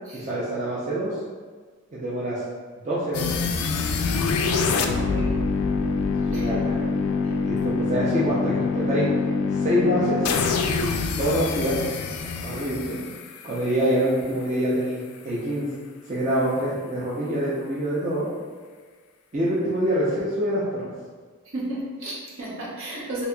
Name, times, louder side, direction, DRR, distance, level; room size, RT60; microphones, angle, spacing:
voice 1, 0.1-1.1 1.9-2.4 2.8-3.3 6.3-6.9 7.4-9.1 9.6-10.3 11.2-11.8 12.2-13.0 13.4-15.7 16.1-18.3 19.3-20.9, equal, 35° right, -8 dB, 0.5 m, -25 dB
sound 1, 3.1-14.1, left 4 dB, 85° left, 0.3 m, -25 dB
voice 2, 4.4-5.3 6.3-6.4 21.5-23.3, right 1 dB, 65° right, -5 dB, 0.8 m, -33 dB
4.0 x 2.7 x 2.3 m, 1.5 s
head